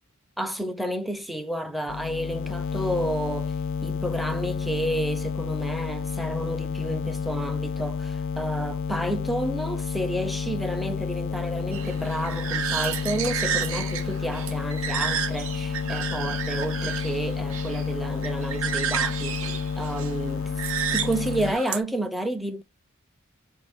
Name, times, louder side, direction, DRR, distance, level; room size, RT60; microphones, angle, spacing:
voice 1, 0.4-3.5 3.8-20.5 20.9-22.6, right 1 dB, ahead, 0.5 m, -31 dB
sound 1, 1.9-21.5, left 6 dB, 65° left, 0.4 m, -30 dB
sound 2, 11.7-21.8, right 8 dB, 70° right, 0.6 m, -31 dB
4.9 x 2.6 x 3.4 m
head